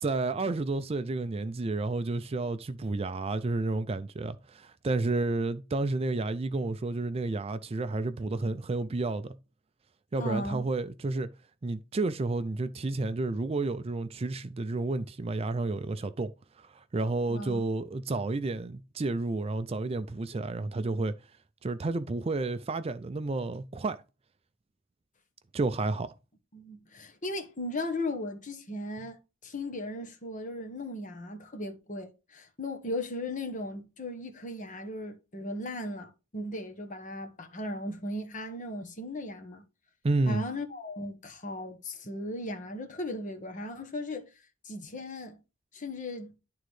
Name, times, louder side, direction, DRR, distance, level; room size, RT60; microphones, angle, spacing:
voice 1, 0.0-9.4 10.1-11.3 11.6-16.3 16.6-21.2 21.6-24.0 25.5-26.1 40.0-40.4, right 3 dB, 30° right, 0.4 m, -31 dB
voice 2, 10.2-10.6 17.3-17.6 26.5-39.6 40.3-44.3 44.6-45.4 45.7-46.3, left 1 dB, 40° left, 1.2 m, -37 dB
11.0 x 3.8 x 3.2 m
head